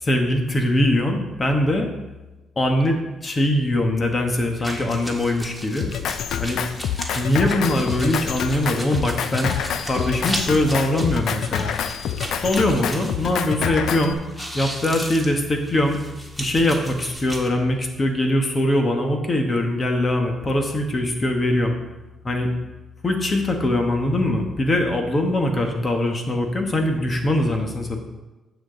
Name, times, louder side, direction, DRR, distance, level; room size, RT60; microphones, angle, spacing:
voice 1, 0.0-1.9 2.6-5.9 6.4-6.6 7.1-9.5 9.8-11.8 12.4-14.2 14.5-16.0 16.4-21.8 22.2-22.5 23.0-28.0, left 1 dB, 30° left, 3 dB, 1.5 m, -22 dB
sound 1, 4.6-13.9 14.2-17.5, equal, 5° left, 1.6 m, -35 dB
Drum kit, 5.8-14.1, left 9 dB, 75° left, 0.5 m, -27 dB
9.4 x 7.0 x 4.0 m, 1.1 s
cardioid pair, 90°, 0 cm